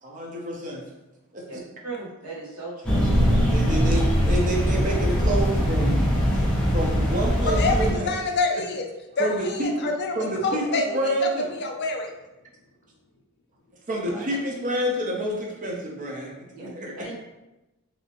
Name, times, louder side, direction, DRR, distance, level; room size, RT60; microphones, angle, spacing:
voice 1, 0.0-0.8 1.3-1.4 3.3-8.1 9.2-9.7 10.2-11.5 13.9-16.3 16.6-17.0, right 1 dB, 35° right, -1 dB, 0.6 m, -28 dB
voice 2, 1.8-3.1 14.1-14.3 16.5-17.1, right 3 dB, 80° right, -4 dB, 1.1 m, -38 dB
sound 1, 2.8-7.9, equal, 5° left, 0.6 m, -21 dB
voice 3, 7.4-8.9 9.2-11.0 11.5-12.1, left 3 dB, 50° left, 2 dB, 0.4 m, -27 dB
3.2 x 2.8 x 2.9 m, 1.0 s
head